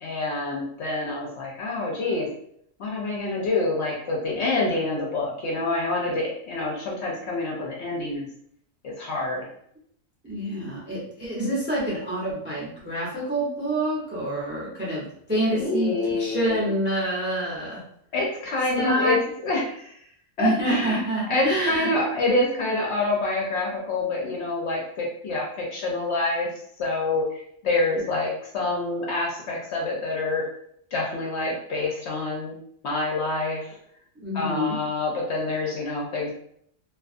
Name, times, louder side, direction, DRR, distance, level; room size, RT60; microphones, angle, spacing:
voice 1, 0.0-2.3 2.8-8.3 8.8-9.4 15.5-16.6 18.1-19.2 19.4-20.0 20.4-21.0 21.3-26.5 26.8-30.4 30.9-32.5 32.8-33.8 34.3-36.3, left 2 dB, 65° left, -2 dB, 0.7 m, -27 dB
voice 2, 10.2-17.8 18.8-19.2 20.4-21.9 34.2-34.8, right 1 dB, 15° right, -6 dB, 0.4 m, -27 dB
2.4 x 2.3 x 2.4 m, 0.68 s
omnidirectional pair, 1.5 m